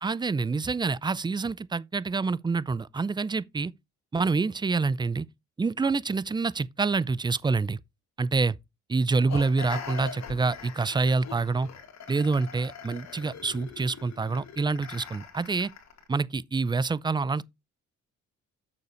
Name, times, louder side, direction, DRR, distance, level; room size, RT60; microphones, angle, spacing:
voice 1, 0.0-3.7 4.1-5.3 5.6-7.8 8.2-8.6 8.9-11.7 12.1-15.7 16.1-17.4, right 4 dB, 15° right, 0.4 m, -27 dB
sound 1, 9.3-16.1, left 6 dB, 65° left, 2.2 m, -42 dB
6.9 x 6.7 x 4.3 m
cardioid pair, 90°, 30 cm